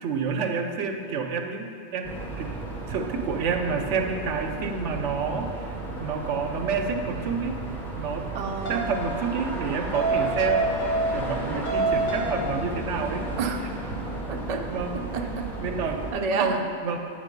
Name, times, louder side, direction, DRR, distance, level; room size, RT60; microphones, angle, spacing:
voice 1, 0.0-2.5 2.9-7.6 8.0-8.3 8.7-13.3 14.7-14.9 15.6-17.0, right 5 dB, 85° right, 5 dB, 1.0 m, -29 dB
sound 1, 2.0-16.1, right 2 dB, ahead, 0.6 m, -34 dB
voice 2, 8.3-8.9 13.4-13.6 14.3-14.6 15.1-15.5 16.1-16.6, right 4 dB, 50° right, 3 dB, 0.5 m, -30 dB
sound 2, 8.7-9.0 9.9-11.4 11.7-12.5, right 2 dB, 50° left, 1.4 m, -26 dB
8.8 x 3.7 x 5.1 m, 2.5 s
omnidirectional pair, 1.2 m